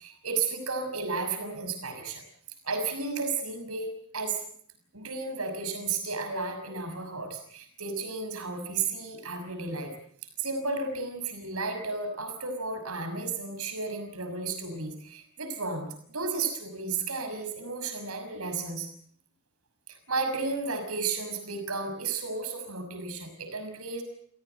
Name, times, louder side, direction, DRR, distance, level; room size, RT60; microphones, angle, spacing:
voice 1, 0.0-2.2 2.6-3.9 4.1-4.4 4.9-9.9 10.4-18.9 20.1-24.0, right 4 dB, 90° right, 6 dB, 6.2 m, -33 dB
28.0 x 17.5 x 8.0 m, 0.62 s
head